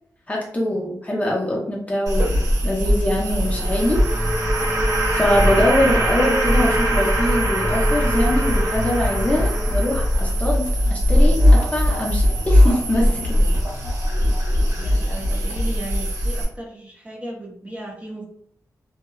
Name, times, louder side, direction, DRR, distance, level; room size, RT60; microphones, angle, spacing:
voice 1, 0.3-4.0 5.1-13.4, left 1 dB, 20° left, -2 dB, 0.6 m, -23 dB
sound 1, 2.1-16.4, equal, 65° right, 1.2 m, -20 dB
sound 2, 3.3-10.4, right 1 dB, 45° right, 1.1 m, -24 dB
voice 2, 14.8-18.2, right 1 dB, 20° right, -2 dB, 0.7 m, -35 dB
2.7 x 2.1 x 2.3 m, 0.70 s
wide cardioid pair, 85°, 7 cm